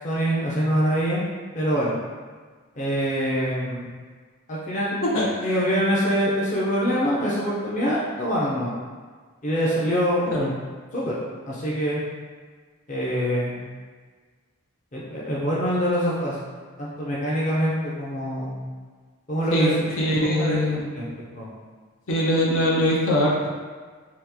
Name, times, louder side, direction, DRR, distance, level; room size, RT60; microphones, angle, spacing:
voice 1, 0.0-1.2 1.5-2.0 2.8-3.9 4.5-4.9 5.4-8.7 9.4-10.2 10.9-11.2 11.5-12.0 12.9-13.7 14.9-16.4 16.8-18.7 19.3-19.9 20.3-20.6 20.9-21.1 21.4-21.5, equal, 35° left, -6 dB, 0.6 m, -24 dB
voice 2, 19.5-20.9 22.1-23.5, left 1 dB, 75° left, -4 dB, 0.7 m, -22 dB
3.0 x 2.3 x 3.5 m, 1.5 s
head